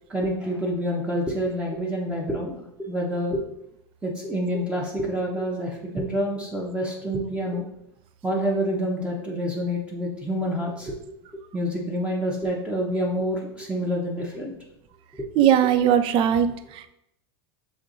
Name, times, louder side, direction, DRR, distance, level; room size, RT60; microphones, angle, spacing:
voice 1, 0.1-3.4 4.0-7.7 8.2-11.0 11.5-14.5 15.1-15.2, equal, 10° right, -3 dB, 0.9 m, -27 dB
voice 2, 15.4-16.9, right 9 dB, 45° right, 9 dB, 0.5 m, -20 dB
6.6 x 2.7 x 2.6 m, 0.81 s
hypercardioid pair, 100°, 13 cm